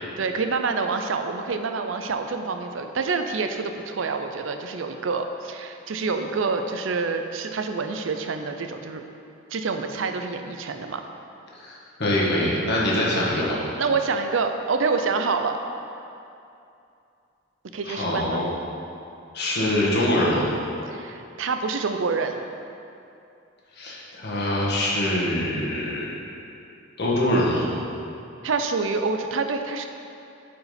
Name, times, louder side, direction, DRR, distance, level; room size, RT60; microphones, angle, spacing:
voice 1, 0.2-9.0 9.5-11.0 13.8-15.6 17.7-18.4 20.9-22.4 28.4-29.9, right 4 dB, 70° right, 6 dB, 0.5 m, -27 dB
voice 2, 11.5-13.6 17.8-18.4 19.3-20.5 23.8-26.0 27.0-27.7, left 1 dB, 55° left, -5 dB, 1.6 m, -24 dB
8.3 x 4.8 x 5.1 m, 2.6 s
head